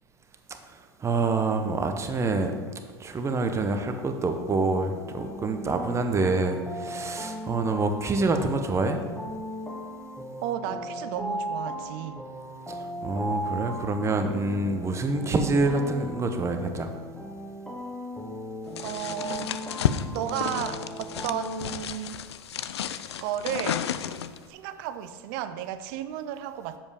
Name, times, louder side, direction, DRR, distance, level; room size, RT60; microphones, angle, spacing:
voice 1, 1.0-2.5 3.0-9.0 13.0-16.9, right 3 dB, 20° right, 6 dB, 0.8 m, -26 dB
sound 1, 4.8-21.7, equal, 5° left, 0.9 m, -37 dB
voice 2, 10.4-12.3 18.8-19.6 20.1-22.2 23.2-23.8 24.5-26.8, right 10 dB, 60° right, 12 dB, 0.6 m, -33 dB
sound 2, 18.8-24.5, left 9 dB, 90° left, 0.4 m, -32 dB
7.2 x 5.2 x 4.9 m, 1.5 s
hypercardioid pair, 105°, 14 cm